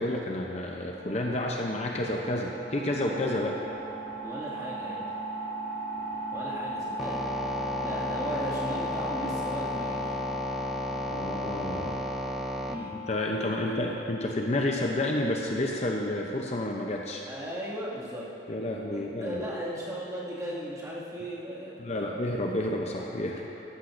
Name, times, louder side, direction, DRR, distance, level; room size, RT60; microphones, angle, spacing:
voice 1, 0.0-3.6 11.1-12.0 13.1-17.2 18.5-19.4 21.8-23.6, left 1 dB, 35° left, 0 dB, 0.6 m, -30 dB
sound 1, 0.9-14.4, left 2 dB, 45° right, 2.0 m, -37 dB
voice 2, 4.2-5.1 6.3-7.2 7.8-10.1 12.7-13.0 13.3-13.8 17.3-18.3 18.9-22.1, equal, 20° right, -8 dB, 2.1 m, -37 dB
sound 2, 7.0-12.8, right 2 dB, ahead, 0.4 m, -34 dB
14.0 x 11.5 x 2.6 m, 3.0 s
head